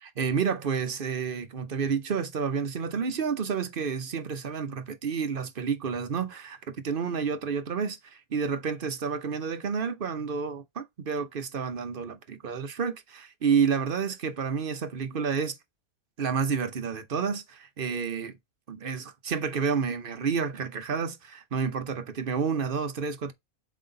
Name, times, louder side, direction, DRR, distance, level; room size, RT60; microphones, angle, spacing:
voice 1, 0.0-15.6 16.2-18.4 18.7-23.3, right 6 dB, 45° right, 0.9 m, -30 dB
7.7 x 3.5 x 3.9 m
omnidirectional pair, 1.5 m